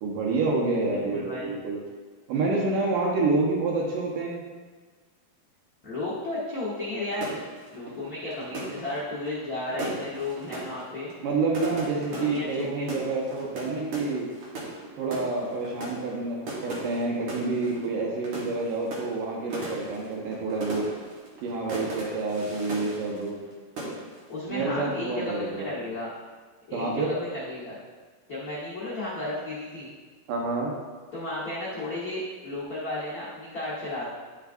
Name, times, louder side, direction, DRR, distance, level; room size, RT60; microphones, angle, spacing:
voice 1, 0.0-1.8 2.3-4.4 11.2-14.3 15.0-20.9 21.4-23.4 24.5-25.7 26.7-27.1 30.3-30.7, right 3 dB, 85° right, -2 dB, 2.7 m, -28 dB
voice 2, 0.8-1.5 5.8-7.4 7.7-11.1 12.1-12.9 24.3-26.1 26.7-27.8 28.3-29.9 31.1-34.1, left 2 dB, 65° left, -9 dB, 0.9 m, -33 dB
sound 1, 7.1-23.5 23.8-24.3, right 2 dB, 55° right, 1.9 m, -38 dB
11.5 x 4.6 x 2.5 m, 1.4 s
omnidirectional pair, 3.7 m